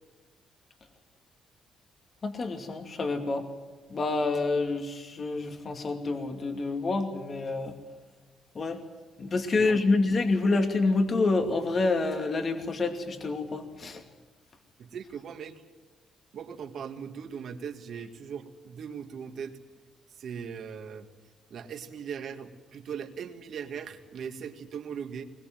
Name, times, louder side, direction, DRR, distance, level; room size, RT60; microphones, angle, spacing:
voice 1, 2.2-3.5 3.9-7.7 8.6-8.8 9.2-14.0, left 3 dB, 40° left, 5 dB, 2.5 m, -27 dB
voice 2, 9.6-10.0 14.8-15.5 16.3-19.6 20.2-21.1 21.5-25.3, right 7 dB, 65° right, 6 dB, 2.2 m, -39 dB
21.0 x 21.0 x 9.1 m, 1.2 s
cardioid pair, 90°, 0 cm